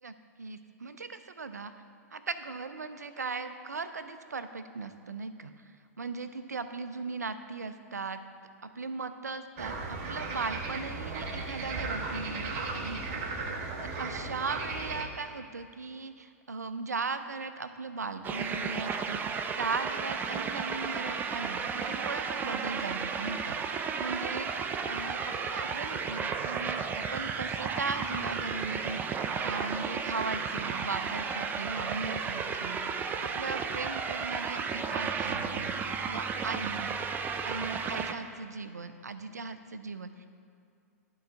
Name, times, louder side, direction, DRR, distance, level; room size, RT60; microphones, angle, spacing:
voice 1, 0.0-1.7 2.1-5.5 6.0-8.2 8.6-13.2 14.0-23.7 24.0-36.9 37.4-40.3, right 4 dB, 85° right, 10 dB, 0.4 m, -38 dB
sound 1, 9.6-15.0, right 3 dB, 45° right, 0.9 m, -36 dB
sound 2, 18.2-38.1, right 5 dB, 20° right, 0.4 m, -33 dB
11.5 x 3.9 x 4.4 m, 2.4 s
figure-of-eight pair, 100°, 9 cm